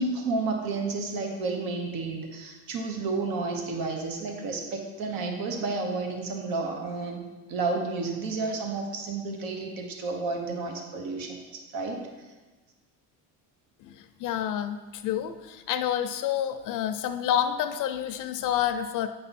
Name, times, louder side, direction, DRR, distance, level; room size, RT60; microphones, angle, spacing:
voice 1, 0.0-12.0, right 3 dB, 65° right, 3 dB, 1.3 m, -31 dB
voice 2, 13.8-19.1, left 10 dB, 55° left, 9 dB, 0.5 m, -29 dB
9.2 x 5.4 x 4.2 m, 1.2 s
cardioid pair, 125°, 37 cm